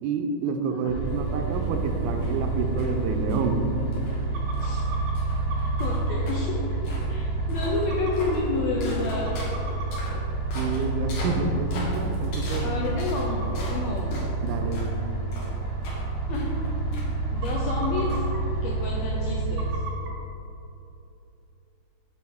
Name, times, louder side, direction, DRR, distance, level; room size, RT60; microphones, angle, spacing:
voice 1, 0.0-3.6 10.6-12.7 14.4-14.8, right 4 dB, 85° right, 5 dB, 2.1 m, -28 dB
sound 1, 0.9-19.8, right 3 dB, 40° right, 1.7 m, -29 dB
sound 2, 1.5-19.2, left 1 dB, 60° left, 1.8 m, -42 dB
sound 3, 4.2-5.1 5.5-6.2 6.7-6.8 7.1-7.2 7.6-8.3 8.8-8.9 9.1-10.0 10.4-10.5 11.7-11.8 12.1-12.2 13.3-13.5 14.3-14.4 15.0-15.1 15.4-15.5 15.7-15.8 16.3-16.4 16.5-16.9 17.3-18.4 19.6-20.1, right 4 dB, 65° right, 1.8 m, -38 dB
voice 2, 5.6-6.8 7.1-9.4 12.6-14.3 16.3-16.6 17.3-18.3 18.6-19.8, left 3 dB, 85° left, -2 dB, 1.5 m, -30 dB
7.0 x 4.7 x 3.5 m, 2.9 s
omnidirectional pair, 3.5 m